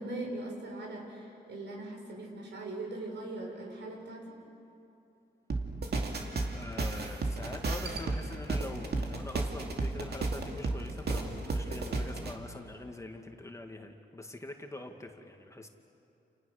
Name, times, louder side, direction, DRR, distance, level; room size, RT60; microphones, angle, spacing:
voice 1, 0.0-4.2, right 2 dB, 85° right, 0 dB, 6.4 m, -40 dB
sound 1, 5.5-12.3, right 3 dB, 65° right, 2.6 m, -33 dB
voice 2, 6.5-15.7, left 2 dB, 15° left, 3 dB, 2.0 m, -44 dB
30.0 x 30.0 x 6.6 m, 2.7 s
wide cardioid pair, 120°, 18 cm